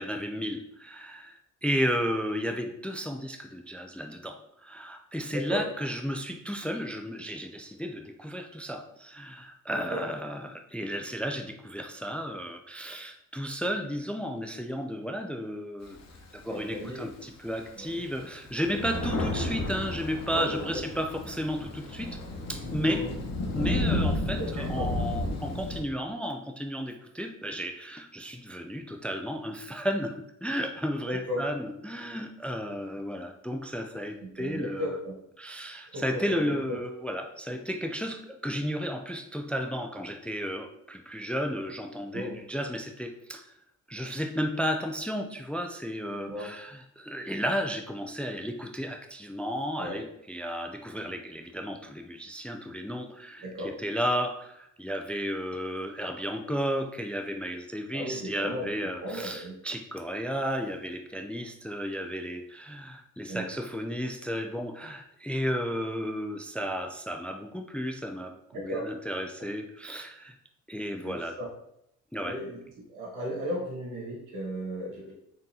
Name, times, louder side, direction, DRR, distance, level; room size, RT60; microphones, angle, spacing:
voice 1, 0.0-16.0 16.3-22.2 22.5-23.0 23.5-35.0 35.4-43.5 43.9-70.4 70.7-71.4 72.1-72.4, equal, 5° left, 5 dB, 0.3 m, -33 dB
voice 2, 5.3-5.6 9.7-10.0 16.5-17.1 17.8-18.0 18.7-18.8 20.3-20.8 22.8-23.2 24.4-24.9 31.1-31.4 34.2-35.1 35.9-36.8 42.1-42.4 46.3-46.5 49.8-50.0 53.4-53.7 57.9-59.6 63.3-63.5 68.5-68.9 69.4-69.5 71.0-71.5 72.2-72.6 72.9-75.1, equal, 90° right, -3 dB, 1.6 m, -35 dB
Thunder, 15.8-17.1 17.6-17.7 18.0-25.8, left 1 dB, 60° left, 1.0 m, -32 dB
3.8 x 3.7 x 2.8 m, 0.75 s
cardioid pair, 90°, 30 cm